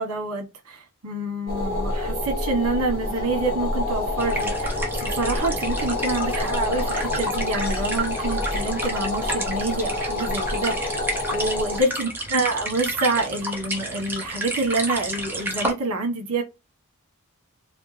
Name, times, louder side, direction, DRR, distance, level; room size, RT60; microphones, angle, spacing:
voice 1, 0.0-16.4, right 2 dB, 80° right, 1.3 m, -27 dB
sound 1, 1.5-11.8, left 2 dB, 40° left, 1.0 m, -27 dB
sound 2, 4.2-15.7, right 1 dB, 10° right, 0.8 m, -31 dB
4.3 x 2.1 x 3.2 m
head